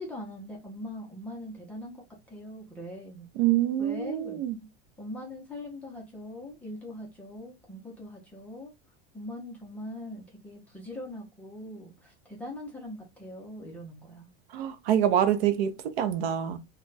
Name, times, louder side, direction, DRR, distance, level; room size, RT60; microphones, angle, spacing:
voice 1, 0.0-3.3 3.8-4.4 5.0-8.7 9.1-14.3, left 1 dB, 5° left, 0.5 m, -41 dB
voice 2, 3.4-4.5 14.5-16.6, right 10 dB, 70° right, 0.6 m, -26 dB
2.2 x 2.2 x 3.8 m
supercardioid pair, 165°, 32 cm